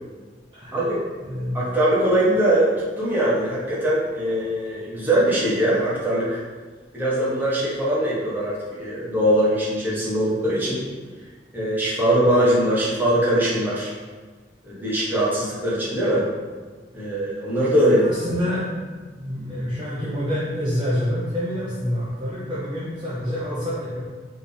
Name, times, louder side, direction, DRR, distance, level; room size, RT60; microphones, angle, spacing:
voice 1, 0.7-1.0 1.5-6.4 6.9-10.8 11.5-13.9 14.6-16.3 16.9-18.0, right 1 dB, 10° right, -8 dB, 1.2 m, -21 dB
voice 2, 1.3-1.6 17.9-18.9 19.2-24.0, equal, 25° right, -9 dB, 0.8 m, -27 dB
4.6 x 3.1 x 3.4 m, 1.4 s
head